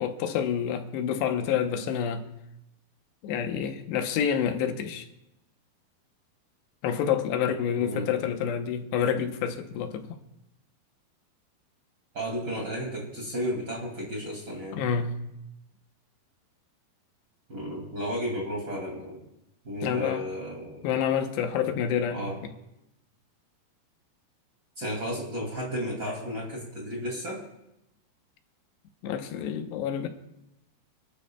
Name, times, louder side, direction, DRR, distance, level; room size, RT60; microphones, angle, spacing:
voice 1, 0.0-2.2 3.2-5.1 6.8-10.1 14.7-15.2 19.8-20.2 20.8-22.2 29.0-30.1, left 8 dB, 85° left, 3.1 m, -28 dB
voice 2, 7.7-8.1 12.1-14.8 17.5-19.3 19.6-20.9 22.1-22.4 24.8-27.4, equal, 30° right, 2.5 m, -33 dB
29.5 x 12.0 x 2.3 m
omnidirectional pair, 4.8 m